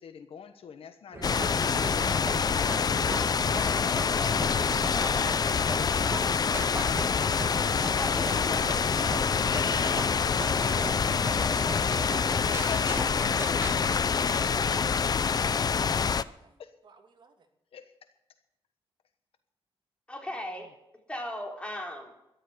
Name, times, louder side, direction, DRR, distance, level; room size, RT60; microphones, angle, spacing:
voice 1, 0.0-2.5 2.8-4.0 9.9-10.0 12.2-13.8 16.6-16.7 17.7-17.9 20.2-20.3, left 7 dB, 80° left, 9 dB, 1.2 m, -45 dB
sound 1, 1.1-13.9, right 2 dB, 25° right, 1.9 m, -39 dB
sound 2, 1.2-16.2, left 6 dB, 45° left, 0.6 m, -26 dB
sound 3, 3.9-15.2, right 4 dB, 70° right, 7.2 m, -57 dB
voice 2, 4.8-5.2 8.0-8.7 20.1-20.7 21.1-22.1, left 1 dB, 10° left, 1 dB, 3.6 m, -37 dB
voice 3, 8.6-9.0 9.6-10.1 14.2-17.5, right 5 dB, 55° right, 3 dB, 2.6 m, -50 dB
13.5 x 12.0 x 6.8 m, 0.85 s
wide cardioid pair, 110°, 10 cm